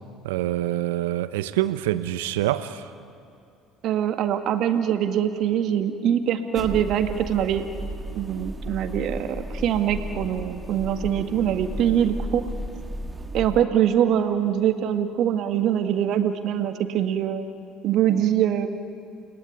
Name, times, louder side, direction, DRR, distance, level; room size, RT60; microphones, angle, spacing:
voice 1, 0.2-2.9, right 14 dB, 75° right, 13 dB, 1.0 m, -26 dB
voice 2, 3.8-7.6 8.2-12.4 13.3-17.5 17.8-18.7, right 10 dB, 55° right, 7 dB, 1.9 m, -23 dB
sound 1, 6.5-13.6, right 1 dB, 15° right, 1.8 m, -34 dB
29.5 x 19.5 x 9.7 m, 2.5 s
hypercardioid pair, 60°, 0 cm